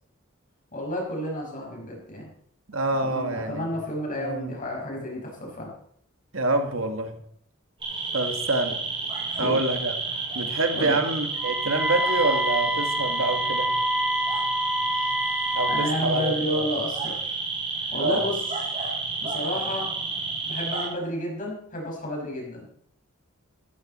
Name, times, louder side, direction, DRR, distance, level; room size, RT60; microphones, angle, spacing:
voice 1, 0.7-2.3 3.0-5.7 9.3-9.6 10.7-11.0 15.4-17.4 17.9-18.4 19.2-19.9 20.5-22.7, left 1 dB, 40° left, -1 dB, 5.7 m, -31 dB
voice 2, 2.7-3.8 4.2-4.6 6.3-7.2 8.1-8.8 9.4-9.9 10.3-13.7 15.5-16.7 18.0-18.2, right 2 dB, 70° right, 6 dB, 1.8 m, -26 dB
sound 1, 7.8-20.9, right 4 dB, 25° right, 7.8 m, -31 dB
Wind instrument woodwind instrument, 11.4-16.0, equal, 5° right, 0.6 m, -27 dB
16.5 x 13.5 x 4.3 m, 0.65 s
head